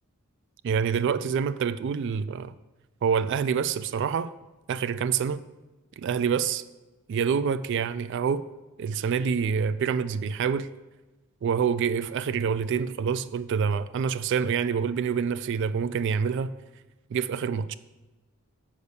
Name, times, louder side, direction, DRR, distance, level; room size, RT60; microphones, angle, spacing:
voice 1, 0.6-2.5 3.0-4.3 4.7-5.4 6.0-6.6 7.1-8.5 8.8-10.7 11.4-16.5 17.1-17.7, right 6 dB, 55° right, 0.3 m, -26 dB
6.6 x 5.4 x 6.9 m
head